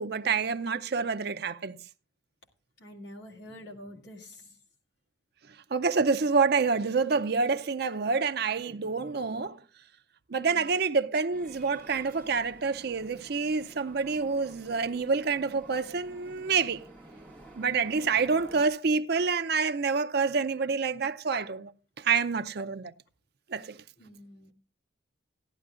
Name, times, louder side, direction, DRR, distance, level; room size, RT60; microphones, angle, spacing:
voice 1, 0.0-1.8 5.7-9.6 10.3-16.8 17.6-21.7 22.0-22.9 23.5-23.8, right 5 dB, 55° right, 0.5 m, -27 dB
voice 2, 2.8-4.6 10.3-10.7 17.9-18.4 24.0-24.5, left 1 dB, 55° left, 2.3 m, -47 dB
sound 1, 11.3-18.7, right 1 dB, 5° left, 2.0 m, -51 dB
16.5 x 11.0 x 2.4 m
head